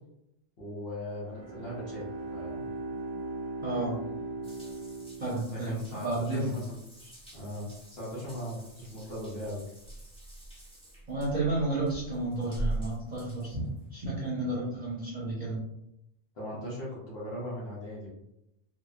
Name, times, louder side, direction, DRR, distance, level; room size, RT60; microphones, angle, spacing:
voice 1, 0.6-2.1 2.3-2.7 5.5-9.6 14.4-14.7 16.3-18.1, equal, 70° left, -7 dB, 1.1 m, -39 dB
Bowed string instrument, 1.2-5.9, right 3 dB, 70° right, 0.9 m, -39 dB
voice 2, 3.6-4.0 5.2-5.7 6.0-6.4 11.1-15.6, right 2 dB, 45° right, -8 dB, 0.8 m, -32 dB
Water tap faucet / Bathtub (filling or washing) / Drip, 4.4-14.3, right 1 dB, 5° left, 0.9 m, -43 dB
2.8 x 2.1 x 2.3 m, 0.82 s
omnidirectional pair, 1.1 m